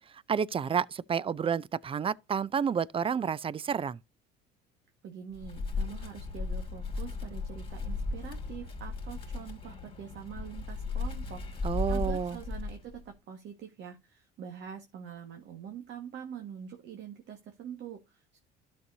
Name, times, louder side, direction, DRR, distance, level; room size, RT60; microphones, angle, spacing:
voice 1, 0.3-4.0 11.6-12.4, right 7 dB, 25° right, 0.5 m, -30 dB
voice 2, 5.0-18.4, right 8 dB, 55° right, 1.7 m, -45 dB
Wind, 5.3-13.1, left 3 dB, 25° left, 2.4 m, -36 dB
12.0 x 6.3 x 2.7 m
supercardioid pair, 85°, 21 cm